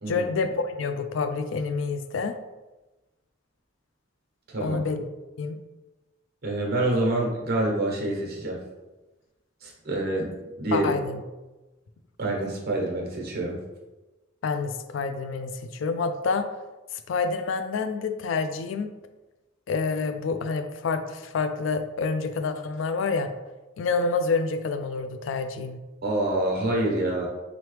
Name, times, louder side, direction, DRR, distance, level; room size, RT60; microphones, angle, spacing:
voice 1, 0.0-2.4 4.6-5.0 5.4-5.6 10.7-11.2 14.4-16.5 17.1-18.9 19.7-23.3 23.8-25.8, left 4 dB, 70° left, 9 dB, 0.4 m, -28 dB
voice 2, 4.5-4.9 6.4-8.6 9.6-10.3 10.6-10.9 12.2-13.6 26.0-27.3, right 1 dB, 55° right, -1 dB, 1.0 m, -26 dB
3.8 x 3.1 x 3.2 m, 1.1 s
head